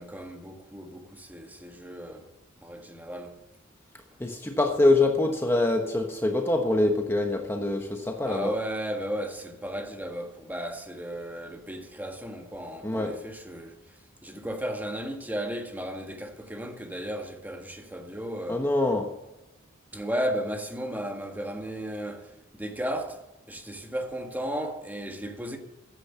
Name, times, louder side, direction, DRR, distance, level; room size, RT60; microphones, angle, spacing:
voice 1, 0.0-2.3 2.6-3.4 8.2-13.7 14.2-18.6 19.9-23.2 23.5-25.6, equal, 10° right, 1.5 m, -34 dB
voice 2, 4.2-8.5 12.8-13.1 18.5-19.1, left 2 dB, 10° left, 1.1 m, -24 dB
14.5 x 10.0 x 5.9 m
head